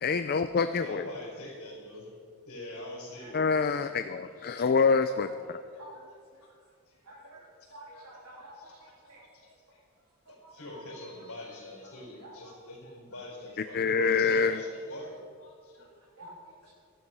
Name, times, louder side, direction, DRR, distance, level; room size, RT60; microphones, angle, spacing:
voice 1, 0.0-1.0 3.3-5.6 13.7-14.6, left 5 dB, 45° left, 9 dB, 0.4 m, -26 dB
voice 2, 0.8-2.2 2.4-3.9 5.7-5.8 6.4-6.5 6.9-7.3 7.6-8.0 8.3-8.4 9.0-9.8 10.3-15.9, left 1 dB, 80° left, -2 dB, 4.6 m, -45 dB
voice 3, 5.0-5.4 5.8-6.1 7.0-7.4 7.7-8.5 9.1-9.2 10.6-11.0 12.2-12.5 15.8-16.7, right 1 dB, 75° right, -8 dB, 3.5 m, -50 dB
15.5 x 11.5 x 5.5 m, 2.2 s
head